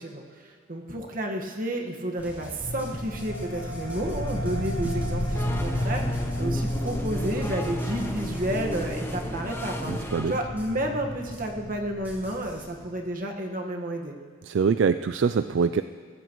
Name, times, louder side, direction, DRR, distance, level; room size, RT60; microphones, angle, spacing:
voice 1, 0.0-14.2, right 1 dB, 40° right, 2 dB, 1.5 m, -31 dB
sound 1, 2.2-11.7 12.0-12.6, equal, 10° right, 2.8 m, -45 dB
sound 2, 2.6-12.8, left 1 dB, 65° left, 3.0 m, -32 dB
sound 3, 5.3-10.4, left 1 dB, 10° left, 0.8 m, -36 dB
voice 2, 9.9-10.3 14.4-15.8, right 5 dB, 65° right, 11 dB, 0.3 m, -24 dB
22.5 x 14.5 x 3.1 m, 2.1 s
head